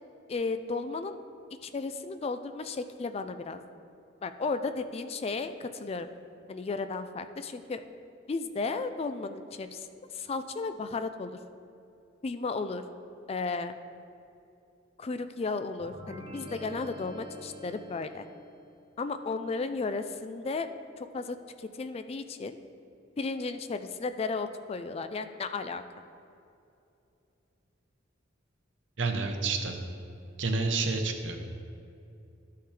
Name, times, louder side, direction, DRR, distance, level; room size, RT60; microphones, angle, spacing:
voice 1, 0.3-1.2 1.6-3.6 4.2-6.1 6.5-7.8 8.3-9.9 10.1-11.4 12.2-12.8 13.3-13.7 15.0-18.3 19.0-20.7 21.0-22.6 23.2-25.8, left 4 dB, 30° left, 10 dB, 0.3 m, -34 dB
sound 1, 15.8-18.6, equal, 25° right, 0.9 m, -45 dB
voice 2, 29.0-29.8 30.4-31.4, right 3 dB, 75° right, 4 dB, 0.9 m, -29 dB
13.0 x 5.6 x 3.3 m, 2.7 s
head